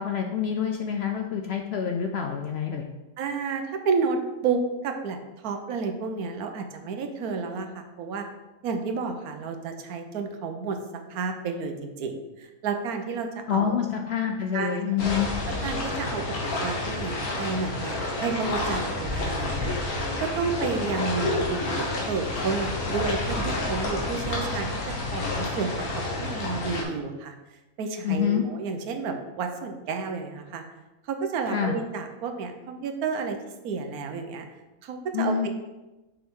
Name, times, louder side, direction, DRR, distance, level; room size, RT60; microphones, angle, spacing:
voice 1, 0.0-2.9 13.5-15.3 28.0-28.4 31.5-31.7 35.1-35.5, left 8 dB, 65° left, 4 dB, 0.6 m, -27 dB
voice 2, 3.2-5.2 5.4-8.3 8.6-10.8 11.1-13.8 14.5-14.9 15.5-19.8 20.2-24.7 25.1-27.3 27.8-30.6 31.1-33.4 33.6-34.5 34.8-35.5, right 4 dB, 85° right, 6 dB, 1.2 m, -31 dB
sound 1, 15.0-26.8, left 2 dB, 85° left, 1.8 m, -29 dB
6.8 x 5.1 x 3.7 m, 1.1 s
omnidirectional pair, 1.5 m